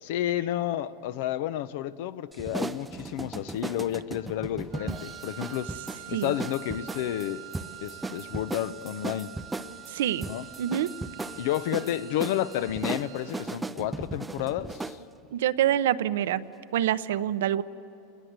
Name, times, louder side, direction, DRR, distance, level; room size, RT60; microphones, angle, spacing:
voice 1, 0.0-5.7 6.1-7.4 7.8-9.3 10.2-10.4 11.4-15.0, left 12 dB, 65° left, 0.8 m, -31 dB
sound 1, 2.3-15.0, right 2 dB, 10° right, 0.6 m, -37 dB
Wind instrument woodwind instrument, 4.7-13.6, right 17 dB, 60° right, 1.3 m, -46 dB
voice 2, 9.9-10.3 10.6-10.9 15.3-16.4 16.7-17.6, right 11 dB, 80° right, 0.8 m, -26 dB
27.5 x 20.5 x 8.1 m
supercardioid pair, 145°, 0 cm